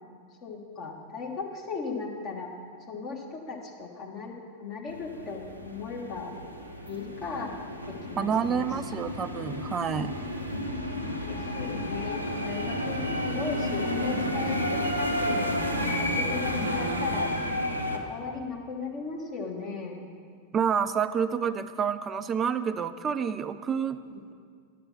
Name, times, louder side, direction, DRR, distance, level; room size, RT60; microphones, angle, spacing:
voice 1, 0.4-2.5 2.9-6.3 6.9-7.6 7.9-8.7 11.2-15.5 16.0-17.3 17.9-20.0 24.0-24.2, left 4 dB, 35° left, 0 dB, 1.5 m, -37 dB
sound 1, 4.9-18.0, left 1 dB, 90° left, 0.8 m, -31 dB
voice 2, 8.2-10.1 20.5-24.0, right 7 dB, 25° right, 12 dB, 0.4 m, -28 dB
10.5 x 7.5 x 5.9 m, 2.1 s
figure-of-eight pair, 90°, 0 cm